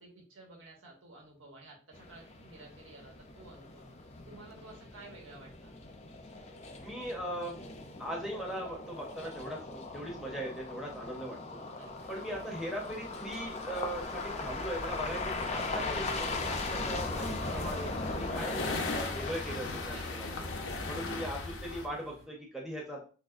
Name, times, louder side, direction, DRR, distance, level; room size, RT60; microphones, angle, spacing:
voice 1, 0.0-3.9 4.2-5.7 11.8-12.1 19.9-20.3, right 2 dB, 85° right, -1 dB, 1.3 m, -53 dB
sound 1, 1.9-21.3, left 3 dB, 35° left, 0.5 m, -39 dB
voice 2, 6.8-7.6 8.0-11.6 12.1-20.4 20.8-23.1, equal, ahead, -2 dB, 0.8 m, -39 dB
sound 2, 11.9-22.3, right 2 dB, 50° right, 1.1 m, -56 dB
sound 3, 16.4-21.9, left 3 dB, 75° left, 0.7 m, -38 dB
6.2 x 2.1 x 2.5 m, 0.37 s
head